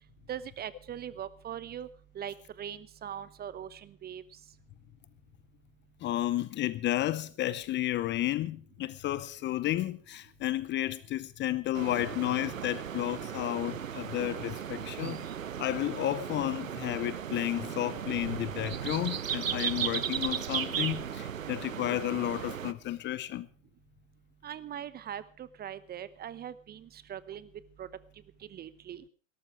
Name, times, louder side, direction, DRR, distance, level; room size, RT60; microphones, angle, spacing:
voice 1, 0.3-1.9 2.1-4.2 24.4-27.5 27.8-27.9 28.5-29.0, right 9 dB, 25° right, 0.9 m, -41 dB
voice 2, 6.0-15.2 15.6-23.5, left 14 dB, 30° left, 0.7 m, -32 dB
sound 1, 11.7-22.7, right 8 dB, 90° right, 0.9 m, -36 dB
17.5 x 13.5 x 4.8 m
hypercardioid pair, 100°, 38 cm